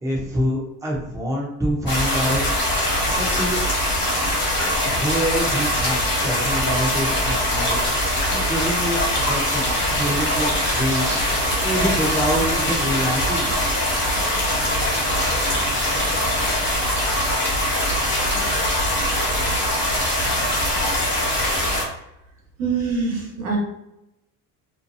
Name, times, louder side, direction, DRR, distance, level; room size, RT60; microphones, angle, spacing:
voice 1, 0.0-2.4 3.0-3.6 4.8-9.0 9.3-13.8, equal, 10° right, -3 dB, 0.8 m, -26 dB
sound 1, 1.9-21.8, equal, 30° left, 1.1 m, -22 dB
sound 2, 9.2-16.7, right 2 dB, 50° right, 1.1 m, -38 dB
voice 2, 22.6-23.6, right 5 dB, 70° right, -2 dB, 1.2 m, -24 dB
2.8 x 2.2 x 2.6 m, 0.86 s
supercardioid pair, 90°, 38 cm